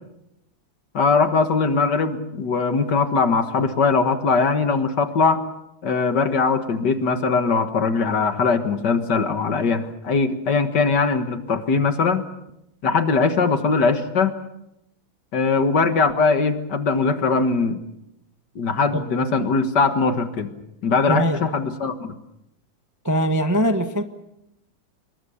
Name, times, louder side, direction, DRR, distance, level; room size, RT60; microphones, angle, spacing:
voice 1, 0.9-5.4 5.8-12.2 12.8-14.3 15.3-17.8 18.6-20.5 20.8-22.1, left 4 dB, 55° left, 8 dB, 2.1 m, -21 dB
voice 2, 21.1-21.4 23.0-24.0, equal, 15° right, 7 dB, 0.8 m, -21 dB
26.5 x 22.5 x 7.0 m, 0.85 s
omnidirectional pair, 2.4 m